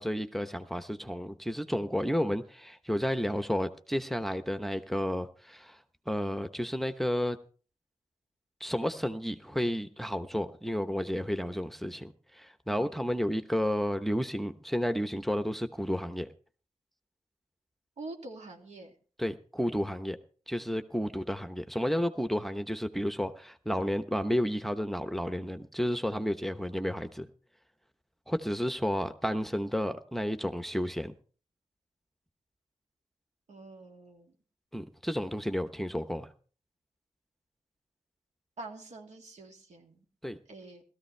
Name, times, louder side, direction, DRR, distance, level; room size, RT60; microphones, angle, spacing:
voice 1, 0.0-5.8 6.1-7.4 8.6-16.3 19.2-20.2 20.5-27.3 28.3-31.1 34.7-36.3 40.2-40.4, equal, ahead, 1.0 m, -31 dB
voice 2, 12.7-13.0 18.0-18.9 33.5-34.3 38.6-40.0 40.5-40.8, right 2 dB, 75° right, 2.7 m, -46 dB
17.0 x 14.0 x 3.3 m
cardioid pair, 55°, 12 cm